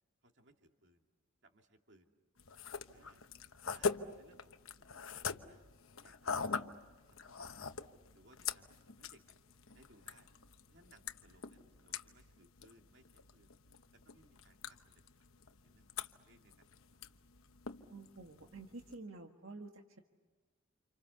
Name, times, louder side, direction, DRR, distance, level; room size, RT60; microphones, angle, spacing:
voice 1, 0.2-1.0 1.4-2.1 2.9-3.2 3.7-5.6 6.0-6.4 7.1-7.8 8.1-9.4 9.7-10.3 10.7-13.5 13.9-15.3 15.6-15.9 16.2-16.6, right 2 dB, 60° right, 3 dB, 2.5 m, -66 dB
sound 1, 2.4-19.0, left 5 dB, 85° left, 1.1 m, -44 dB
voice 2, 17.9-20.0, right 3 dB, 75° right, 3 dB, 1.7 m, -50 dB
30.0 x 28.5 x 7.0 m, 1.3 s
head